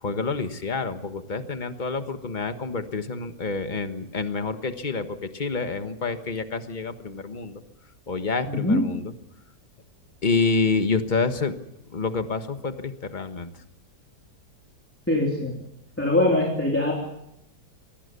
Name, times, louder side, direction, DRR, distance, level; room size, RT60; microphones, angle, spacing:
voice 1, 0.0-7.6 8.1-9.1 10.2-11.6 11.9-13.5, left 4 dB, 30° left, 8 dB, 1.4 m, -28 dB
voice 2, 8.5-8.9 15.1-15.6 16.0-16.9, left 1 dB, 5° left, -2 dB, 3.5 m, -22 dB
24.5 x 19.5 x 6.9 m, 0.84 s
omnidirectional pair, 1.8 m